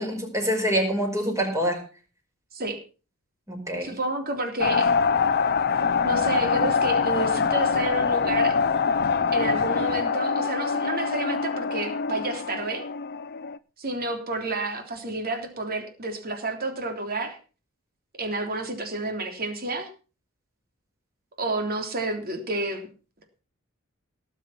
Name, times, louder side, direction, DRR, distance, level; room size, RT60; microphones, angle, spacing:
voice 1, 0.0-1.8 3.5-3.9, equal, 15° right, 2 dB, 5.2 m, -26 dB
voice 2, 3.8-4.9 6.0-8.6 9.3-12.8 13.8-17.4 18.2-19.9 21.4-22.9, right 2 dB, 45° right, 5 dB, 3.4 m, -30 dB
sound 1, 4.6-13.6, left 5 dB, 50° left, 0.6 m, -24 dB
18.0 x 7.6 x 5.7 m, 0.35 s
head